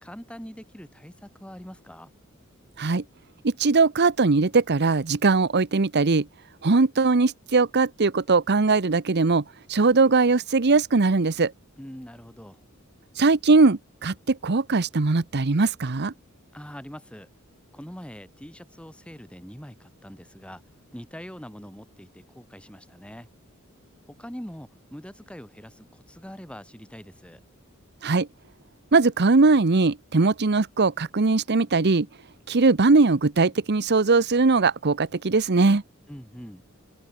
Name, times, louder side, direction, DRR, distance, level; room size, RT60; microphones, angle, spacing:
voice 1, 0.0-2.1 11.8-12.6 16.5-17.3 17.7-20.6 20.9-23.3 24.1-27.4 36.1-36.6, equal, 5° left, 2.3 m, -43 dB
voice 2, 3.4-6.3 6.6-9.4 9.7-11.5 13.2-16.1 28.0-28.3 28.9-32.1 32.5-35.8, right 3 dB, 55° right, 0.9 m, -20 dB
open air
head